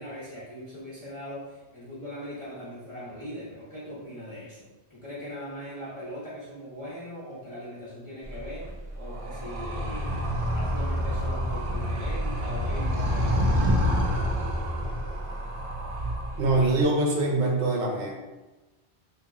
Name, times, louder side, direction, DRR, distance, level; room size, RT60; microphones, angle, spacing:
voice 1, 0.0-8.7 9.0-13.7, equal, 30° left, -11 dB, 1.0 m, -40 dB
Animal, 8.2-16.8, equal, 55° right, 0.3 m, -28 dB
voice 2, 16.3-18.1, right 2 dB, 75° right, -1 dB, 1.0 m, -24 dB
3.0 x 2.6 x 3.6 m, 1.1 s
omnidirectional pair, 1.1 m